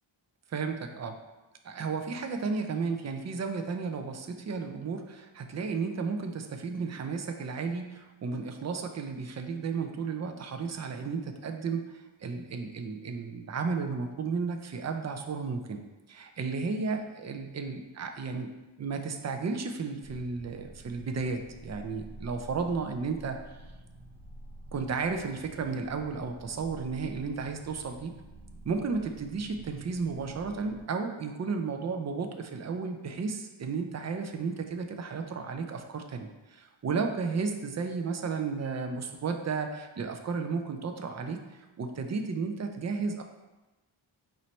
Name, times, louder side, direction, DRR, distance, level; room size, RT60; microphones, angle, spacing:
voice 1, 0.5-1.2 1.6-15.8 16.1-18.5 18.8-23.4 24.7-28.1 28.6-41.4 41.8-43.2, right 4 dB, 35° right, 5 dB, 0.4 m, -33 dB
sound 1, 20.0-30.8, right 1 dB, 90° right, 1.2 m, -49 dB
4.3 x 4.0 x 3.1 m, 1.1 s
wide cardioid pair, 145°, 49 cm